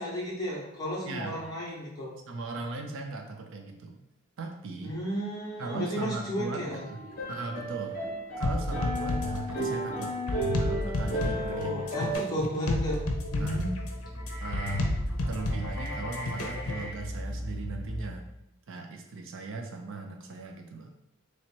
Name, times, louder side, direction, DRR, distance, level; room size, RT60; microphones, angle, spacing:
voice 1, 0.0-2.2 4.8-6.8 11.5-13.0 13.3-13.7, equal, 20° left, -6 dB, 1.2 m, -33 dB
voice 2, 1.0-1.4 2.3-4.0 4.4-4.9 5.6-7.0 7.3-8.0 8.4-10.1 10.6-12.1 13.4-13.7 14.4-14.9 15.3-18.3 18.7-20.9, right 3 dB, 60° right, 3 dB, 0.5 m, -38 dB
sound 1, 6.7-12.1, equal, 40° left, 1.2 m, -34 dB
sound 2, 8.4-16.9, left 2 dB, 75° left, 0.6 m, -32 dB
sound 3, 13.1-18.4, equal, 40° right, 1.3 m, -38 dB
3.1 x 2.9 x 4.4 m, 0.86 s
head